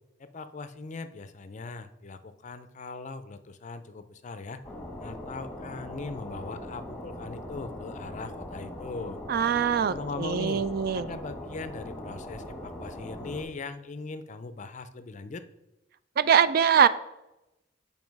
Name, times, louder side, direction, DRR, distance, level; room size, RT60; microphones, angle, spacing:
voice 1, 0.2-4.6 5.0-9.2 9.9-10.6 10.9-15.4, left 3 dB, 40° left, 11 dB, 0.5 m, -39 dB
sound 1, 4.6-13.4, left 1 dB, 10° left, 1.3 m, -40 dB
voice 2, 9.3-11.1 16.2-16.9, right 7 dB, 55° right, 14 dB, 0.3 m, -23 dB
7.4 x 5.3 x 4.6 m, 0.94 s
head